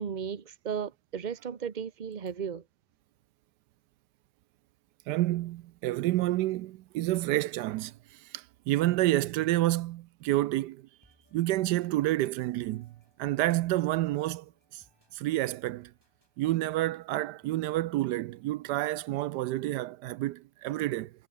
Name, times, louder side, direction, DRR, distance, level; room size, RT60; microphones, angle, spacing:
voice 1, 0.0-2.6, right 7 dB, 30° right, 1.0 m, -35 dB
voice 2, 5.1-10.9 11.3-12.9 13.2-14.8 15.1-15.9 16.4-21.1, right 16 dB, 80° right, 1.2 m, -29 dB
sound 1, 11.0-18.8, equal, 15° right, 7.5 m, -67 dB
omnidirectional pair, 1.8 m